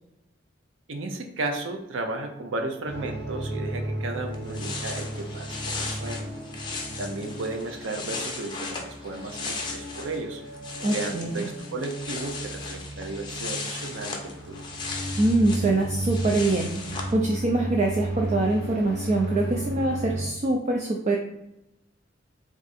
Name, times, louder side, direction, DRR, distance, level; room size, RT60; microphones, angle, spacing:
voice 1, 0.9-6.3 7.0-10.4 10.9-14.6, right 2 dB, 90° right, 4 dB, 0.6 m, -34 dB
sound 1, 2.9-20.3, right 1 dB, 60° right, 0.8 m, -35 dB
sound 2, 4.0-4.1 4.3-10.2 10.5-17.1, left 4 dB, 25° left, 0.6 m, -37 dB
voice 2, 10.8-11.5 15.2-21.2, right 2 dB, 35° right, 0 dB, 0.4 m, -24 dB
3.5 x 2.5 x 4.1 m, 0.86 s
head